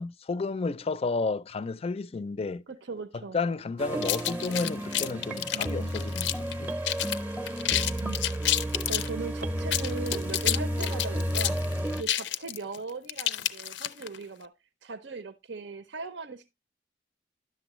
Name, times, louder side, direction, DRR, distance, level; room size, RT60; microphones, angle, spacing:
voice 1, 0.0-2.6 3.3-6.8 7.3-7.4, left 4 dB, 35° left, 0.4 m, -32 dB
voice 2, 2.7-3.4 5.5-6.0 8.0-8.2 8.9-14.5 14.8-16.5, right 3 dB, 80° right, 0.7 m, -39 dB
sound 1, 3.8-12.0, right 1 dB, 10° right, 0.7 m, -32 dB
sound 2, 4.0-6.5 6.8-7.2 7.5-9.1 9.6-14.2, left 12 dB, 90° left, 0.5 m, -29 dB
10.5 x 7.0 x 3.0 m
head